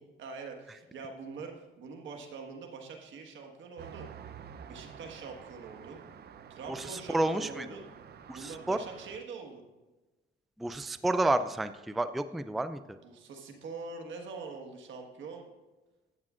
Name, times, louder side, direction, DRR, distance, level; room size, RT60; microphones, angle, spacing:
voice 1, 0.2-4.0 4.6-6.0 6.5-7.8 8.3-9.6 13.0-15.5, right 4 dB, 70° right, 3 dB, 1.5 m, -44 dB
Traffic noise roadway noise, 3.8-9.2, right 7 dB, 55° right, 0.6 m, -49 dB
voice 2, 6.7-7.6 8.3-8.8 10.6-12.8, right 2 dB, ahead, 11 dB, 0.3 m, -30 dB
13.5 x 8.4 x 2.5 m, 1.1 s
cardioid pair, 90°, 20 cm